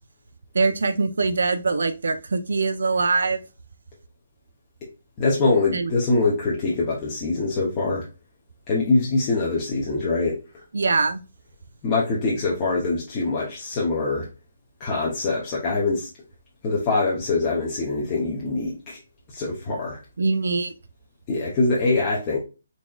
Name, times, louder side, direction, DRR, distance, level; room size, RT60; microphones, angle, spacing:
voice 1, 0.5-3.4 5.7-5.9 10.7-11.2 20.2-20.7, right 4 dB, 80° right, 0.5 m, -23 dB
voice 2, 5.2-8.1 8.7-10.6 11.8-14.3 14.8-16.1 16.6-19.0 19.3-20.0 21.3-22.4, left 3 dB, 15° left, 0.7 m, -23 dB
4.0 x 3.5 x 2.3 m
hypercardioid pair, 175°, 0 cm